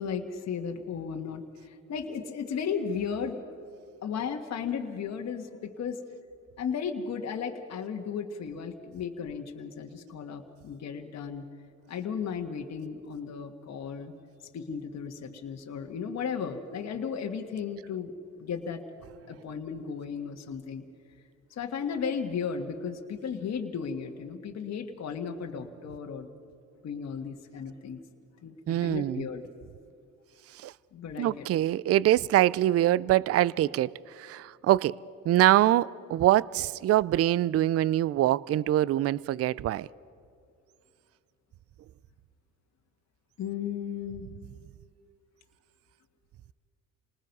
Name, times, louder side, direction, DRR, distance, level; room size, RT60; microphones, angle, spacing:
voice 1, 0.0-3.4 4.0-6.0 6.6-11.4 11.9-14.1 14.5-18.8 19.3-20.8 21.5-26.3 26.8-28.0 28.4-29.4 30.9-31.5 43.4-44.3, left 6 dB, 60° left, 1.6 m, -35 dB
voice 2, 28.7-29.2 30.5-30.7 31.2-35.0 35.3-39.9, right 13 dB, 55° right, 0.4 m, -24 dB
28.5 x 19.5 x 5.4 m
cardioid pair, 90°, 30 cm